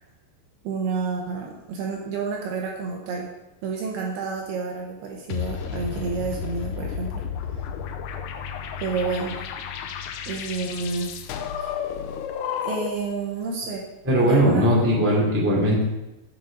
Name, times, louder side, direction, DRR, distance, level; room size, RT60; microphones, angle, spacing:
voice 1, 0.6-3.3 3.6-7.2 8.8-9.4 10.3-11.1 12.6-13.8 14.2-15.1, right 4 dB, 75° right, 0 dB, 2.5 m, -30 dB
sound 1, 5.3-13.1, left 8 dB, 90° left, 2.4 m, -32 dB
voice 2, 14.0-15.8, equal, 5° right, -5 dB, 1.0 m, -19 dB
7.9 x 6.5 x 5.2 m, 0.98 s
omnidirectional pair, 5.3 m